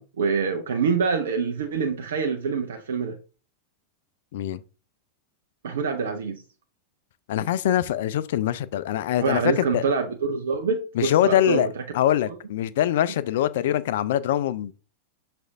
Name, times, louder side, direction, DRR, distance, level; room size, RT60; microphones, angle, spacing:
voice 1, 0.0-3.2 5.6-6.4 9.2-11.7, right 5 dB, 65° right, 0.5 m, -25 dB
voice 2, 7.3-9.9 11.0-11.7 11.9-14.7, left 11 dB, 55° left, 0.3 m, -23 dB
6.2 x 2.5 x 3.4 m
figure-of-eight pair, 90°, 0 cm